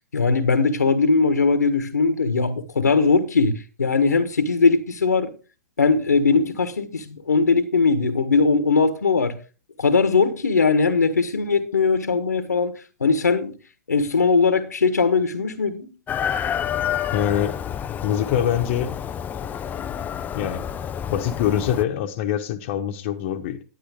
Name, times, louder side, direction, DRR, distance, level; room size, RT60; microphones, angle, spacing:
voice 1, 0.1-5.3 5.8-9.4 9.8-12.7 13.0-13.6 13.9-15.9, left 4 dB, 90° left, 1.5 m, -20 dB
Chicken rooster, 16.1-21.8, left 9 dB, 20° left, 0.5 m, -29 dB
voice 2, 17.1-17.6 18.0-18.9 20.3-20.6 21.1-23.6, left 10 dB, 50° left, 1.2 m, -24 dB
11.5 x 9.7 x 3.6 m
hypercardioid pair, 115°, 9 cm